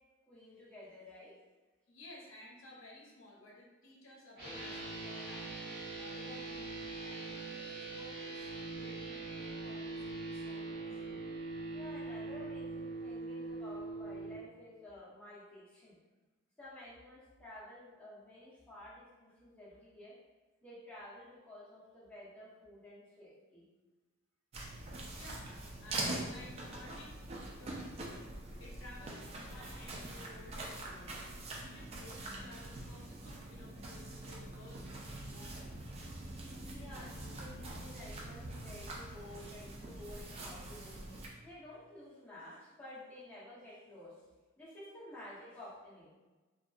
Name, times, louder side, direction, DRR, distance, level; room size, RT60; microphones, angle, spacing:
voice 1, 0.3-1.3 11.7-16.0 16.6-20.1 20.6-23.6 36.7-41.0 41.4-44.2 44.6-46.1, left 1 dB, 5° left, -9 dB, 0.6 m, -52 dB
voice 2, 1.9-5.7 6.0-11.3 25.2-27.2 27.6-28.3 28.6-36.0, left 1 dB, 75° left, -3 dB, 0.6 m, -55 dB
sound 1, 4.4-14.3, right 3 dB, 50° right, 1.0 m, -42 dB
sound 2, 24.5-41.3, right 2 dB, 30° right, 0.3 m, -44 dB
2.6 x 2.3 x 2.3 m, 1.2 s
head